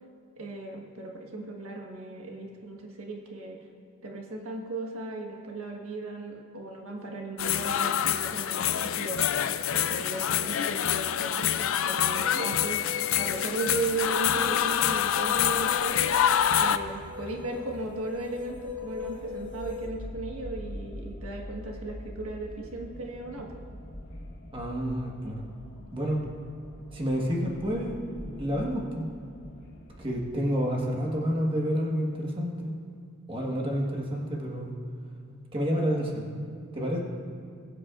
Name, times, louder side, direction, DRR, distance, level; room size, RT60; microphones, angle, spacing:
voice 1, 0.4-3.6 4.0-9.2 9.7-16.0 16.5-23.6, right 2 dB, 90° right, 0 dB, 1.5 m, -36 dB
sound 1, 7.4-16.8, left 9 dB, 65° left, 0.4 m, -26 dB
sound 2, 12.2-19.9, left 5 dB, 10° left, 1.4 m, -40 dB
sound 3, 13.3-30.2, equal, 45° left, 1.4 m, -45 dB
voice 2, 24.5-25.4 25.9-26.2 26.9-28.0 28.4-29.0 30.0-32.7 33.3-34.7 35.5-36.3 36.7-37.0, equal, 25° right, -2 dB, 1.5 m, -29 dB
21.0 x 8.4 x 2.5 m, 2.4 s
head